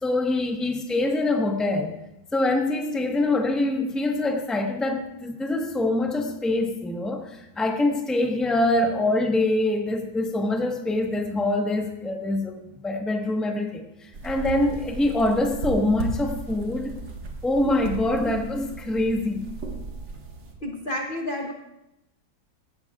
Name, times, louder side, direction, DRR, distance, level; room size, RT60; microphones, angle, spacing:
voice 1, 0.0-1.9 2.3-17.0 17.4-19.4, left 2 dB, ahead, 2 dB, 0.9 m, -24 dB
sound 1, 14.1-20.5, right 3 dB, 65° right, 2.2 m, -35 dB
voice 2, 20.6-21.5, equal, 40° left, 2 dB, 0.8 m, -30 dB
17.0 x 14.0 x 2.4 m, 0.90 s
omnidirectional pair, 2.2 m